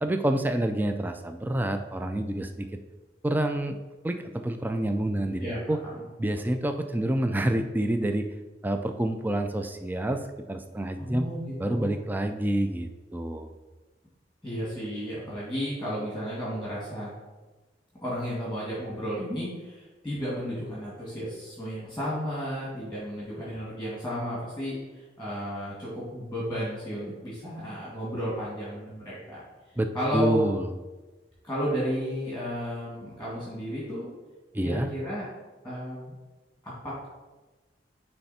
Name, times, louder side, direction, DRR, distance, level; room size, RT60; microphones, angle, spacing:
voice 1, 0.0-2.7 3.2-3.8 4.0-5.8 6.2-8.3 8.6-10.2 10.5-11.3 11.6-13.5 29.8-30.7 34.5-34.9, right 1 dB, 10° right, 6 dB, 0.4 m, -28 dB
voice 2, 5.4-6.0 11.0-12.0 14.4-17.1 18.0-29.4 29.9-30.4 31.4-34.1 34.6-35.3 35.6-36.1 36.6-37.1, equal, 5° left, -7 dB, 2.0 m, -33 dB
9.7 x 3.3 x 4.2 m, 1.2 s
head